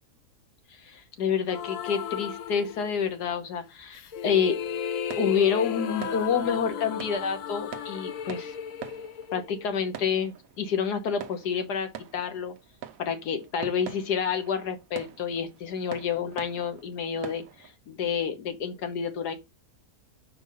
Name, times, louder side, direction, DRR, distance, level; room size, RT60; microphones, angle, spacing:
voice 1, 0.8-4.6 5.1-8.6 9.3-12.5 13.0-19.3, left 7 dB, 85° left, 1.6 m, -29 dB
sound 1, 1.5-3.2 3.9-10.0, left 8 dB, 65° left, 1.0 m, -35 dB
sound 2, 4.6-17.8, right 9 dB, 65° right, 1.0 m, -46 dB
4.8 x 4.3 x 5.4 m
omnidirectional pair, 1.7 m